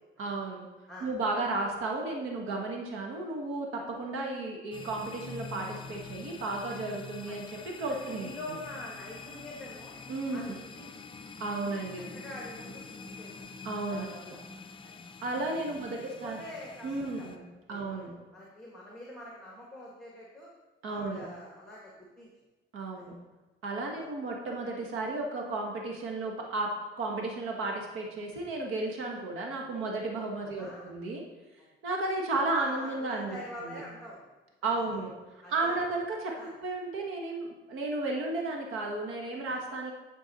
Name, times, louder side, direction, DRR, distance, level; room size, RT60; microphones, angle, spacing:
voice 1, 0.2-0.7 1.0-7.5 7.8-8.3 10.1-10.6 11.4-12.1 13.6-14.4 15.2-16.4 16.8-17.4 17.7-18.1 20.8-21.2 22.7-23.2 23.6-26.7 27.0-31.2 31.8-33.8 34.6-35.1 35.5-36.3 36.6-39.9, right 2 dB, 75° right, 0 dB, 1.5 m, -33 dB
sound 1, 4.7-17.4, left 4 dB, 25° left, 0.5 m, -46 dB
voice 2, 7.9-10.0 10.3-11.1 12.1-13.4 13.9-14.4 14.8-15.0 15.9-17.4 17.7-20.5 20.9-22.3 22.9-23.0 23.9-24.1 30.4-30.9 32.5-34.3 35.4-35.7 36.3-36.5 39.4-39.6, left 1 dB, ahead, -4 dB, 1.6 m, -45 dB
10.0 x 4.6 x 4.2 m, 1.2 s
cardioid pair, 115°, 21 cm